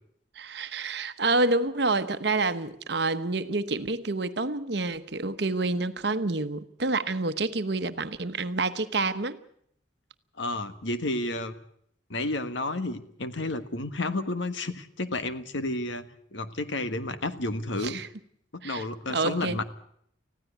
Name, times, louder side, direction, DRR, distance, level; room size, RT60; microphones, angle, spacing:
voice 1, 0.4-9.4 17.8-18.1 18.6-19.6, right 3 dB, 60° right, 1.0 m, -28 dB
voice 2, 10.4-11.5 12.1-18.0 18.5-19.6, left 2 dB, 75° left, 1.4 m, -31 dB
20.0 x 15.0 x 9.3 m
head